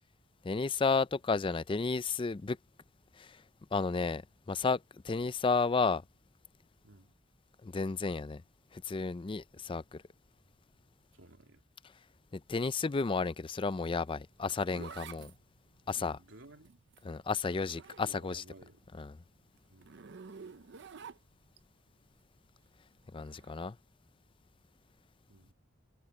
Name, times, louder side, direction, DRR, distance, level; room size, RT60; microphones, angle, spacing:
voice 1, 0.4-2.6 3.2-3.4 3.7-4.2 4.5-6.0 7.6-8.4 8.7-10.0 12.3-15.3 15.9-16.2 17.0-18.4 19.0-19.1 23.1-23.8, left 4 dB, 25° left, 0.4 m, -32 dB
voice 2, 11.1-11.6 15.9-16.8 17.7-18.9 19.7-20.0 25.3-25.5, right 2 dB, 85° right, 2.5 m, -56 dB
Zipper (clothing), 14.1-18.6 18.9-21.6 23.2-23.5, right 5 dB, 60° right, 0.6 m, -51 dB
head